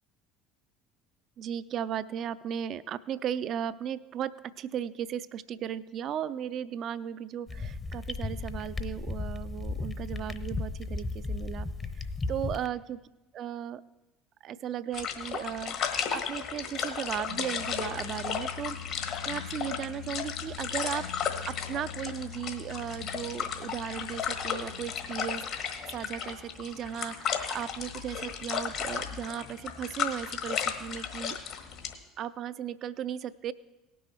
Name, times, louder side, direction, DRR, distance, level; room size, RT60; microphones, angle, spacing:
voice 1, 1.4-11.7 11.9-13.0 13.3-13.8 14.4-15.8 16.1-21.1 21.5-31.4 32.2-33.5, right 9 dB, 50° right, 15 dB, 0.4 m, -36 dB
sound 1, 7.5-12.7, left 3 dB, 25° left, 0.8 m, -35 dB
sound 2, 14.9-31.9, left 7 dB, 60° left, 1.4 m, -35 dB
sound 3, 17.1-25.9, left 9 dB, 80° left, 0.3 m, -44 dB
18.0 x 6.2 x 4.5 m, 0.98 s
hypercardioid pair, 65°, 0 cm